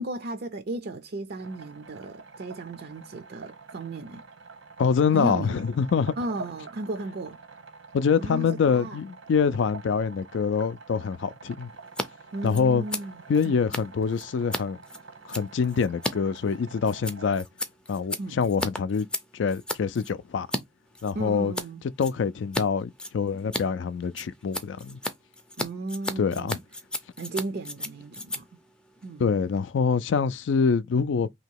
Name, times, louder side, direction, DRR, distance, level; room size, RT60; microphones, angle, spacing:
voice 1, 0.0-4.2 5.1-5.6 6.2-7.4 8.2-9.0 12.3-13.1 13.4-13.6 18.2-18.4 21.1-21.8 25.6-26.6 27.2-28.5 29.0-29.2, right 2 dB, 50° right, 0.5 m, -35 dB
sound 1, 1.4-17.4, right 4 dB, 80° right, 1.0 m, -47 dB
voice 2, 4.8-6.1 7.9-11.7 12.4-12.8 13.3-14.8 15.3-17.5 17.9-19.1 19.3-20.5 21.0-21.5 22.0-25.0 26.2-26.6 29.2-31.3, left 6 dB, 65° left, 0.3 m, -25 dB
Scissors, 11.8-12.1 12.3-20.6 20.9-21.7 22.0-22.6 22.9-29.7, left 1 dB, 5° left, 0.4 m, -35 dB
2.9 x 2.8 x 4.5 m
head